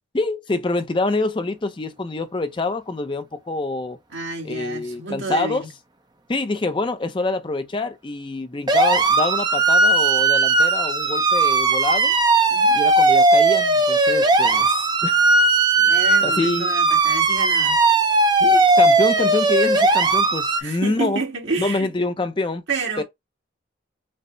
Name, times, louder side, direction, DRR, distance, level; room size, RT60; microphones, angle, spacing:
voice 1, 0.1-4.0 4.4-5.6 6.3-12.1 12.7-15.2 16.2-16.7 18.4-21.2 21.6-22.6 23.0-23.1, left 2 dB, 25° left, 0.4 m, -26 dB
voice 2, 4.1-5.7 12.5-12.8 15.8-17.9 20.6-21.9 22.7-23.0, right 4 dB, 70° right, 1.5 m, -29 dB
sound 1, 8.7-20.6, right 3 dB, 20° right, 0.6 m, -17 dB
5.3 x 2.0 x 3.8 m
head